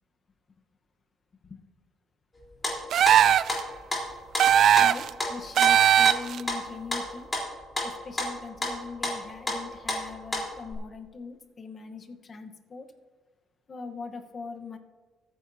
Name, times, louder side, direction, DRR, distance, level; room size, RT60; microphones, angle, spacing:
sound 1, 2.4-3.6 3.9-10.7, left 1 dB, 15° left, 3.7 m, -31 dB
sound 2, 2.9-3.6 4.4-5.1 5.6-6.4, right 10 dB, 55° right, 0.3 m, -19 dB
voice 1, 4.8-7.3 7.8-12.9 13.7-14.8, left 4 dB, 35° left, 6 dB, 1.1 m, -41 dB
24.0 x 9.5 x 2.8 m, 1.4 s
cardioid pair, 125°, 0 cm